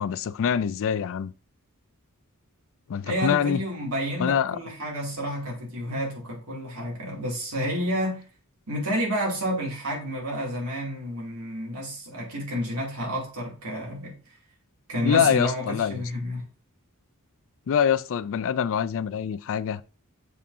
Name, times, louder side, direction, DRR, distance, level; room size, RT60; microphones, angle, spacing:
voice 1, 0.0-1.3 2.9-3.6 4.2-4.6 15.0-16.0 17.7-19.8, left 8 dB, 60° left, 0.4 m, -24 dB
voice 2, 3.0-8.2 8.7-14.2 14.9-16.5, equal, 80° right, 2.6 m, -30 dB
6.9 x 5.1 x 2.7 m
head